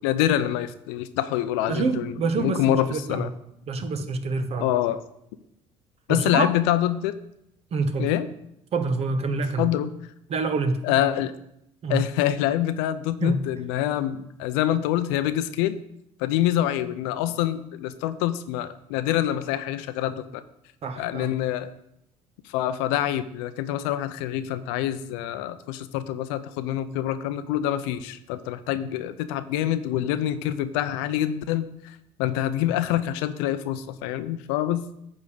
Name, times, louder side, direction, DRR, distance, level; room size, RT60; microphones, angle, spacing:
voice 1, 0.0-3.3 4.6-5.0 6.1-7.2 8.0-8.3 9.6-9.9 10.8-11.3 11.9-15.8 16.2-20.4 21.0-21.7 22.4-34.9, left 12 dB, 85° left, 12 dB, 0.6 m, -26 dB
voice 2, 1.7-3.3 3.7-4.7 6.1-6.5 7.7-8.1 8.7-9.7 10.3-10.9 11.8-12.0 13.2-13.5 20.8-21.3, right 3 dB, 45° right, 9 dB, 1.0 m, -26 dB
9.4 x 3.6 x 6.9 m, 0.79 s
supercardioid pair, 85°, 14 cm